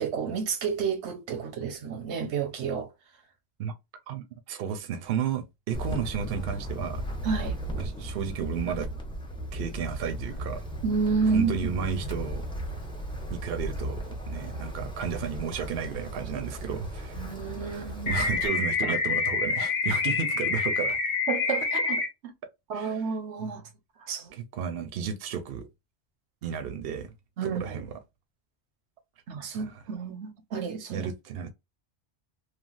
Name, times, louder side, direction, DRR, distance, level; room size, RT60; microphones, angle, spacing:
voice 1, 0.0-2.9 7.2-7.6 10.8-11.5 17.1-18.2 18.8-19.0 21.3-22.3 22.7-23.6 24.0-24.3 27.4-27.8 29.3-31.1, right 5 dB, 90° right, 1.1 m, -30 dB
voice 2, 4.1-7.0 7.8-8.9 9.5-10.6 11.2-12.4 13.3-17.2 17.7-21.0 22.7-23.0 24.3-25.7 26.4-27.1 27.4-27.9 29.5-29.7 30.9-31.5, right 7 dB, 65° right, 0.8 m, -33 dB
Wind, 5.7-18.5, right 1 dB, 5° left, 0.7 m, -36 dB
sound 1, 18.1-22.1, left 4 dB, 60° left, 0.8 m, -27 dB
3.2 x 2.4 x 2.4 m
omnidirectional pair, 1.1 m